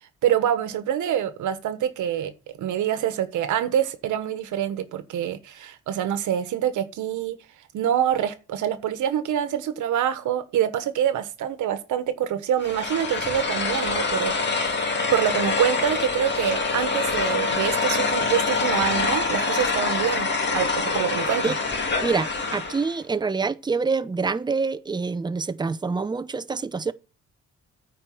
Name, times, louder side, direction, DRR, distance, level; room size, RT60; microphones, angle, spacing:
voice 1, 0.2-2.3 2.6-7.4 7.7-14.6 15.1-21.5, right 10 dB, 80° right, 1.3 m, -26 dB
sound 1, 12.6-22.9, left 4 dB, 35° left, 2.1 m, -25 dB
voice 2, 22.0-26.9, right 4 dB, 15° right, 0.6 m, -26 dB
9.2 x 4.7 x 7.6 m
cardioid pair, 90°, 30 cm